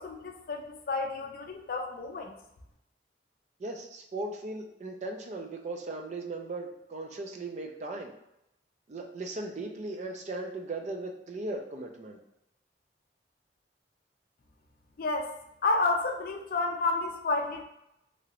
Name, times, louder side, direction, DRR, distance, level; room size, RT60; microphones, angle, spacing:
voice 1, 0.0-2.3 15.0-15.3 15.6-17.6, left 3 dB, 55° left, 3 dB, 0.4 m, -30 dB
voice 2, 3.6-8.1 8.9-12.2, right 2 dB, 40° right, 3 dB, 0.4 m, -37 dB
3.0 x 2.5 x 2.9 m, 0.84 s
head